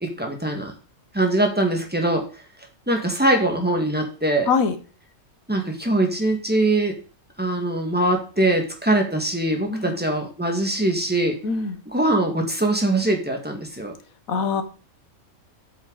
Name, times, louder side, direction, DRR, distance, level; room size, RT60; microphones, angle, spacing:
voice 1, 0.0-0.7 1.1-2.3 2.9-4.5 5.5-6.9 7.4-11.4 11.9-13.9, right 1 dB, 5° right, 2 dB, 1.8 m, -22 dB
voice 2, 11.4-11.8 14.3-14.6, left 5 dB, 75° left, 9 dB, 1.5 m, -23 dB
8.1 x 6.9 x 4.1 m, 0.37 s
omnidirectional pair, 1.5 m